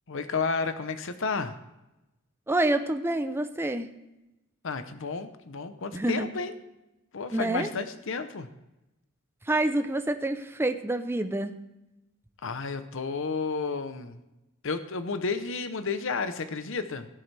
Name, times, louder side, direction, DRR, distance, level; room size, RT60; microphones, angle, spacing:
voice 1, 0.1-1.6 4.6-6.6 7.1-8.5 12.4-14.2 14.6-17.1, left 4 dB, 65° left, 10 dB, 0.8 m, -32 dB
voice 2, 2.5-3.9 5.9-6.3 7.3-7.7 9.5-11.5, right 1 dB, 10° right, 8 dB, 0.6 m, -27 dB
17.5 x 7.6 x 3.4 m, 0.96 s
head